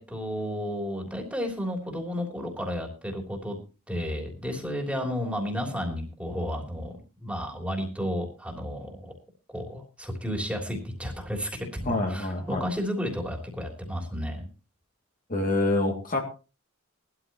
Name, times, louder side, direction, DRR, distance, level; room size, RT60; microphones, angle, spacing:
voice 1, 0.0-3.6 3.9-9.2 9.5-14.5, equal, 5° right, 1 dB, 3.2 m, -32 dB
voice 2, 11.9-12.6 15.3-16.2, left 2 dB, 40° left, 1 dB, 2.5 m, -26 dB
19.0 x 13.0 x 3.0 m, 0.32 s
head